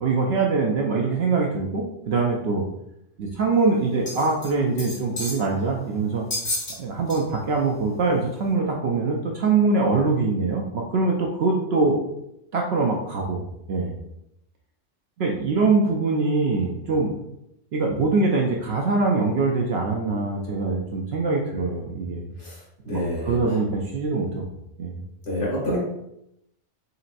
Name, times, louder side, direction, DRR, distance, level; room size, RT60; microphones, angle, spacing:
voice 1, 0.0-2.6 3.2-6.2 6.8-12.0 12.5-13.4 13.7-13.9 15.2-17.1 17.7-22.2 22.9-23.0 23.3-24.5 24.8-25.0, right 3 dB, 65° right, 0 dB, 0.8 m, -23 dB
sound 1, 4.1-4.5 4.8-5.5 6.3-6.8 7.1-7.2 7.8-7.9, left 1 dB, 35° left, 1.3 m, -30 dB
voice 2, 22.4-23.6 25.2-25.8, left 1 dB, 70° left, -6 dB, 1.6 m, -28 dB
4.2 x 3.9 x 2.5 m, 0.81 s
omnidirectional pair, 1.3 m